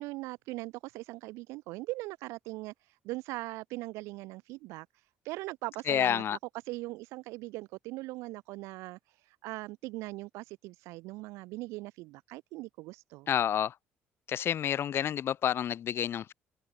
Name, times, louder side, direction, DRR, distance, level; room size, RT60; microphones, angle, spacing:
voice 1, 0.0-6.4 6.6-13.3, right 21 dB, 90° right, 1.0 m, -40 dB
voice 2, 5.9-6.4 13.3-13.7 14.3-16.3, left 9 dB, 55° left, 1.4 m, -29 dB
open air
cardioid pair, 85°, 5 cm